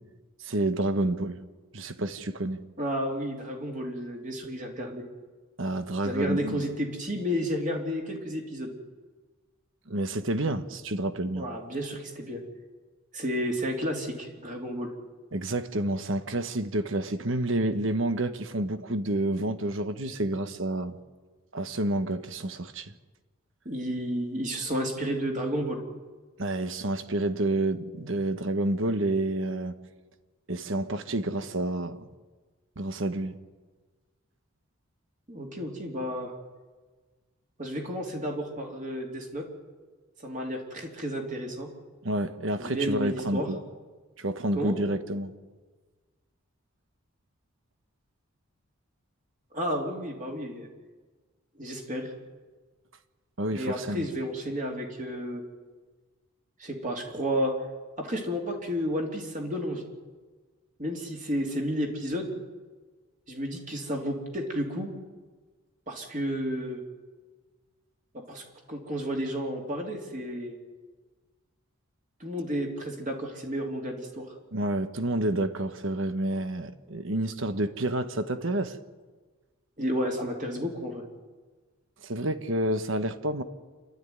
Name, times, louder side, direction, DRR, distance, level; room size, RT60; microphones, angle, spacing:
voice 1, 0.4-1.4 1.7-2.6 5.6-6.6 9.9-11.5 15.3-21.0 21.5-22.9 26.4-29.7 30.5-32.0 32.8-33.4 42.0-43.6 44.2-45.3 53.4-54.1 74.5-78.8 82.0-83.4, right 1 dB, 60° right, 1.2 m, -29 dB
voice 2, 2.8-5.1 6.0-8.7 11.3-12.4 13.1-14.9 23.7-25.8 35.3-36.3 37.6-39.5 40.2-41.7 42.6-43.5 44.6-44.7 49.5-50.7 51.6-52.1 53.5-55.4 56.6-57.5 58.0-59.8 60.8-62.3 63.3-64.9 65.9-66.8 68.1-70.6 72.2-74.3 79.8-81.0, equal, 35° right, 3.4 m, -32 dB
27.0 x 12.5 x 9.6 m
head